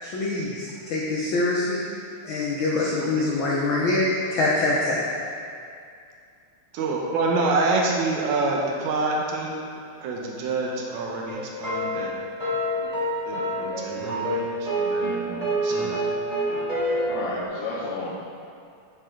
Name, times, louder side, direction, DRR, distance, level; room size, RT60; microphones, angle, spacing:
voice 1, 0.0-1.8 2.2-5.0, left 2 dB, 80° left, -5 dB, 1.1 m, -24 dB
voice 2, 6.7-9.6 10.0-12.1 13.2-16.0, right 3 dB, 85° right, -1 dB, 2.2 m, -27 dB
sound 1, 11.3-17.4, right 1 dB, 45° right, 0.4 m, -27 dB
voice 3, 16.8-18.1, left 3 dB, 65° left, -5 dB, 1.8 m, -32 dB
10.5 x 4.8 x 3.7 m, 2.4 s
omnidirectional pair, 3.3 m